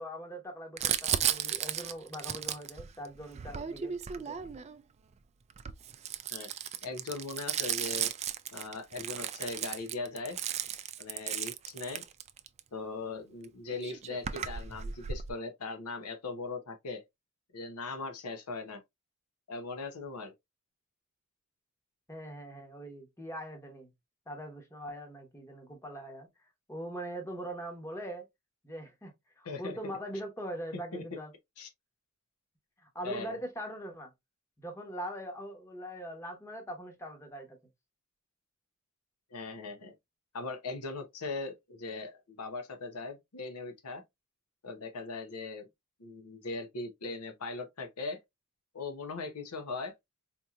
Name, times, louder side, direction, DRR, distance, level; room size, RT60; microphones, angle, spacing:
voice 1, 0.0-4.0 4.2-4.4 22.1-23.9 24.3-26.3 26.7-28.3 28.6-29.1 29.4-31.3 32.8-34.1 34.6-37.6, right 1 dB, 15° left, 1.0 m, -41 dB
Crumpling crinkling, 0.8-4.8 5.5-12.6 13.4-13.5 13.7-15.3, right 9 dB, 30° right, 0.3 m, -35 dB
voice 2, 6.8-8.1 8.5-10.4 11.0-12.0 12.7-17.0 17.5-18.8 19.5-20.3 29.4-29.8 30.9-31.0 31.6-31.7 33.0-33.4 39.3-39.9 40.3-44.0 44.6-45.7 46.0-48.2 48.7-49.9, left 3 dB, 80° left, 0.8 m, -39 dB
4.4 x 2.8 x 2.3 m
head